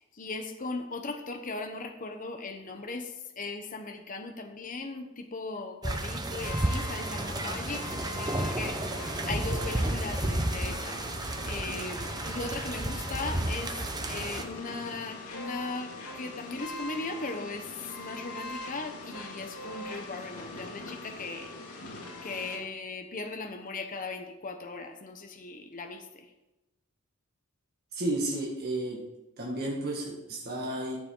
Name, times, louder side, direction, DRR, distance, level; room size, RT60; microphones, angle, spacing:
voice 1, 0.1-8.8 9.2-11.0 11.4-13.7 14.1-21.5 22.2-26.3, left 3 dB, 40° left, 5 dB, 0.9 m, -38 dB
sound 1, 5.8-14.4, right 1 dB, 20° right, 0.9 m, -32 dB
sound 2, 6.4-22.6, left 2 dB, 90° left, 2.4 m, -42 dB
voice 2, 27.9-29.1 29.4-31.0, right 1 dB, 45° right, -3 dB, 1.7 m, -32 dB
13.0 x 7.5 x 3.9 m, 0.98 s
head